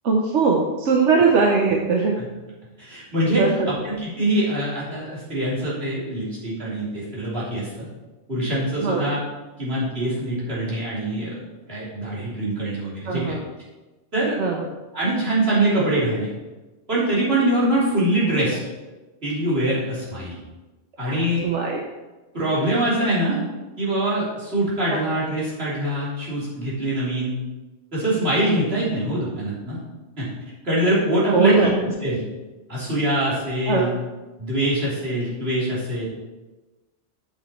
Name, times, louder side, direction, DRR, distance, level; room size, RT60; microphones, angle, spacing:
voice 1, 0.0-2.1 3.4-3.7 8.8-9.0 13.1-13.4 14.4-14.7 21.1-21.8 24.9-25.0 31.3-31.7 33.7-33.9, right 4 dB, 90° right, 1 dB, 1.2 m, -20 dB
voice 2, 2.8-7.9 8.3-9.2 9.6-11.4 11.7-13.4 14.1-14.4 14.9-16.3 16.9-18.6 19.2-20.4 21.0-21.4 22.3-23.4 23.8-27.4 27.9-29.8 30.2-30.3 30.6-31.7 32.0-32.2 32.7-33.9 34.4-36.1, right 1 dB, 60° right, -8 dB, 3.5 m, -23 dB
8.6 x 6.1 x 4.5 m, 1.2 s
omnidirectional pair, 1.2 m